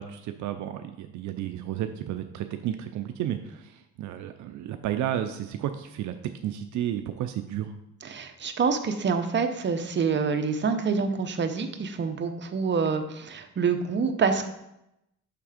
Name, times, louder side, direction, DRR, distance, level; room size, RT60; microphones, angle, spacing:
voice 1, 0.0-6.1 6.4-7.7, right 11 dB, 75° right, 8 dB, 0.5 m, -32 dB
voice 2, 8.0-14.5, right 5 dB, 35° right, 6 dB, 0.8 m, -26 dB
6.6 x 3.4 x 4.9 m, 0.84 s
cardioid pair, 90°, 30 cm